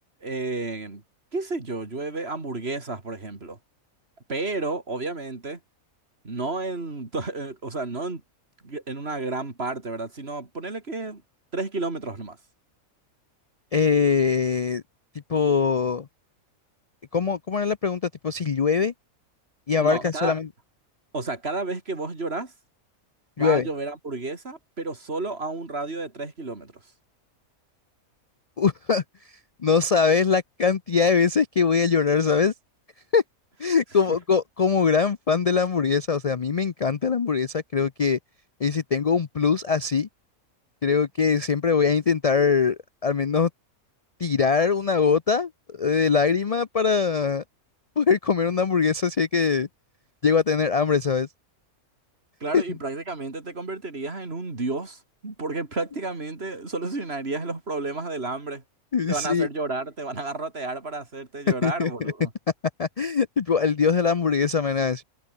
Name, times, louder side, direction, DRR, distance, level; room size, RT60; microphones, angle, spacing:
voice 1, 0.2-1.0 1.3-3.6 4.3-5.6 6.2-8.2 8.6-11.2 11.5-12.4 19.8-20.4 21.1-22.5 23.4-26.7 52.4-58.6 59.1-62.3, right 3 dB, 45° right, 3.3 m, -31 dB
voice 2, 13.7-14.8 15.3-16.1 17.1-18.9 19.7-20.5 23.4-23.7 28.6-29.0 29.6-32.5 33.1-33.2 33.6-38.2 38.6-40.1 40.8-43.5 44.2-47.4 48.0-49.7 50.2-51.3 52.5-52.6 58.9-59.5 61.6-62.1 62.8-65.0, left 5 dB, 45° left, 0.4 m, -22 dB
omnidirectional pair, 1.5 m